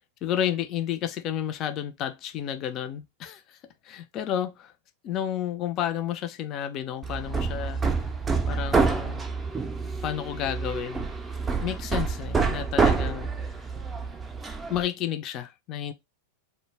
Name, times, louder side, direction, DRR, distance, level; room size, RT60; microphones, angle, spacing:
voice 1, 0.2-3.6 3.8-4.7 5.0-7.8 8.5-9.2 10.0-11.1 11.6-13.3 14.7-15.9, left 10 dB, 40° left, 0.5 m, -31 dB
Hammer, 7.0-14.9, right 4 dB, 15° right, 0.5 m, -27 dB
2.1 x 2.1 x 3.2 m
hypercardioid pair, 105°, 0 cm